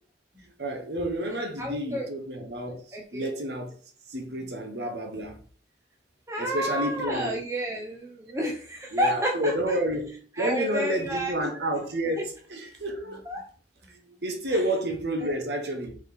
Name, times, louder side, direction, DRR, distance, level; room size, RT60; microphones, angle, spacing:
voice 1, 0.6-3.7 4.1-5.4 6.4-7.4 8.9-13.2 14.2-15.9, right 1 dB, 65° right, 1.1 m, -30 dB
voice 2, 1.6-2.1 2.9-3.3 6.3-9.8 10.4-11.5 13.3-13.5 15.2-15.3, equal, 15° right, 0.8 m, -30 dB
5.5 x 4.4 x 4.2 m
head